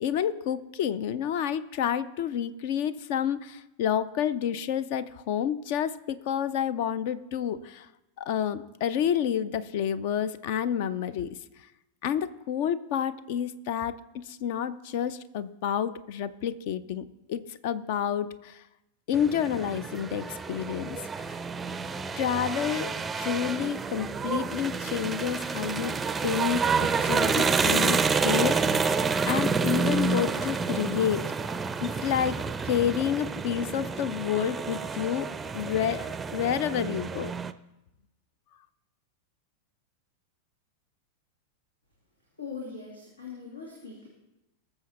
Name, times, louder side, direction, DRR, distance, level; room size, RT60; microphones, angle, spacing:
voice 1, 0.0-7.9 8.2-11.4 12.0-18.6 19.1-21.4 22.1-28.9 29.3-31.3 31.8-37.3, left 9 dB, 50° left, 17 dB, 0.6 m, -29 dB
sound 1, 19.1-37.5, right 5 dB, 15° right, 0.5 m, -29 dB
voice 2, 42.4-44.1, left 5 dB, 75° left, -2 dB, 2.6 m, -41 dB
19.5 x 6.9 x 4.3 m, 0.94 s
figure-of-eight pair, 90°, 0 cm